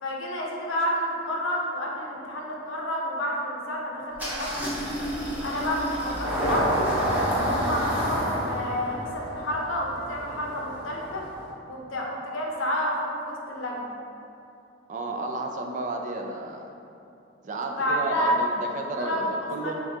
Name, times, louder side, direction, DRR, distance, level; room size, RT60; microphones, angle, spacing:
voice 1, 0.0-4.7 5.4-6.9 7.4-11.3 11.7-13.9 17.8-18.4 19.0-19.3 19.6-19.7, equal, 80° left, -1 dB, 0.7 m, -30 dB
Engine starting, 4.2-11.5, equal, 10° right, 0.8 m, -29 dB
voice 2, 14.9-16.7 17.4-19.7, right 2 dB, 40° right, 2 dB, 0.3 m, -32 dB
6.9 x 2.3 x 2.7 m, 2.7 s
head